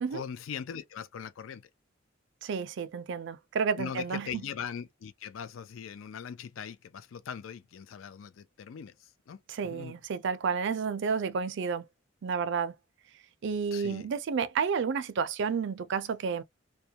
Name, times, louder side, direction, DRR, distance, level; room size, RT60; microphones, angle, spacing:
voice 1, 0.1-1.6 3.8-8.9 9.3-9.9 13.7-14.1, left 7 dB, 80° left, 0.4 m, -40 dB
voice 2, 2.4-4.4 9.5-11.8 12.2-12.7 13.4-16.4, right 6 dB, 65° right, 0.4 m, -31 dB
2.3 x 2.2 x 2.7 m
head